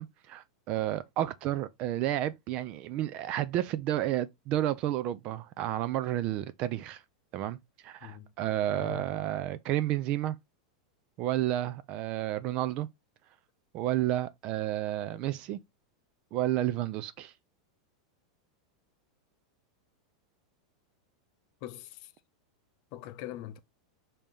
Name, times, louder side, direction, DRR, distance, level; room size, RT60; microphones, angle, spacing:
voice 1, 0.0-7.0 7.3-7.6 7.8-10.4 11.2-12.9 13.7-15.6 16.3-17.3, right 13 dB, 35° right, 0.4 m, -31 dB
voice 2, 8.0-8.3 8.7-9.1 21.6-22.1 22.9-23.6, left 13 dB, 40° left, 0.5 m, -42 dB
5.0 x 2.8 x 3.5 m
supercardioid pair, 160°, 3 cm